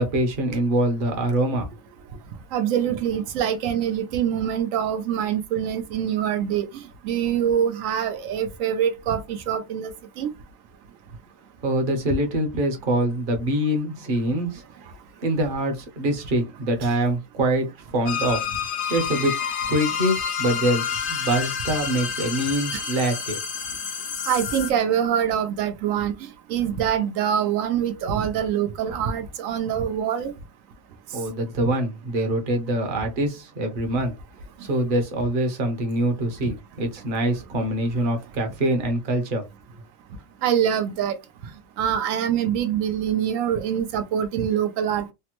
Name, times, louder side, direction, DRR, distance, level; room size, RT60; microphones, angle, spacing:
voice 1, 0.0-1.7 11.6-14.6 15.2-17.7 17.9-18.4 18.9-19.3 19.7-23.4 31.1-34.1 34.6-39.4, right 1 dB, 45° right, 0.9 m, -24 dB
voice 2, 2.5-6.6 7.0-9.9 10.2-10.3 24.3-26.1 26.5-30.3 40.4-41.1 41.8-45.1, right 9 dB, 90° right, 1.0 m, -24 dB
sound 1, 18.1-24.7, left 7 dB, 55° left, 0.7 m, -29 dB
3.3 x 2.0 x 2.9 m
omnidirectional pair, 1.3 m